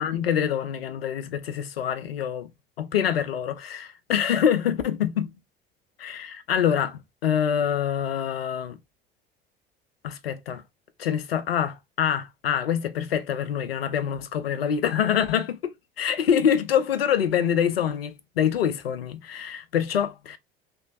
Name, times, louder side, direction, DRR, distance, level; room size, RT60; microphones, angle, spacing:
voice 1, 0.0-2.5 2.8-5.3 6.0-8.8 10.0-10.6 11.0-15.6 16.0-20.4, left 8 dB, 80° left, 0.5 m, -25 dB
3.0 x 2.1 x 2.5 m
figure-of-eight pair, 65°, 29 cm